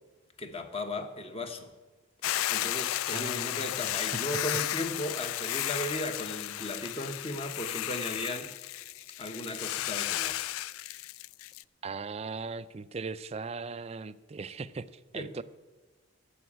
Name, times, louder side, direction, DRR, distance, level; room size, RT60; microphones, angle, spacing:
voice 1, 0.4-1.7 2.5-8.6 9.2-10.5 15.1-15.4, left 1 dB, 30° left, 7 dB, 1.0 m, -36 dB
Hiss / Boiling, 2.2-11.6, left 14 dB, 85° left, 0.3 m, -34 dB
voice 2, 3.1-3.9 11.8-15.4, right 4 dB, 30° right, 15 dB, 0.4 m, -39 dB
12.5 x 7.0 x 8.7 m, 1.2 s
head